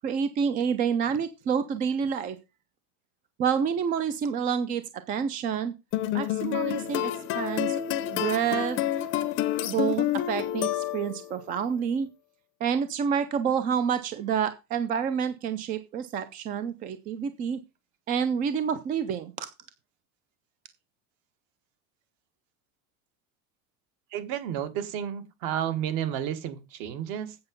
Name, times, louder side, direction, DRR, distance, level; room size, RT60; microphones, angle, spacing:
voice 1, 0.0-2.4 3.4-5.7 6.1-7.8 8.1-8.8 9.6-12.1 12.6-17.6 18.1-19.5, right 7 dB, 20° right, 0.5 m, -28 dB
sound 1, 5.9-11.3, left 12 dB, 30° left, 0.7 m, -29 dB
voice 2, 24.1-27.4, right 10 dB, 50° right, 1.7 m, -31 dB
8.0 x 7.9 x 5.2 m
cardioid pair, 175°, 43 cm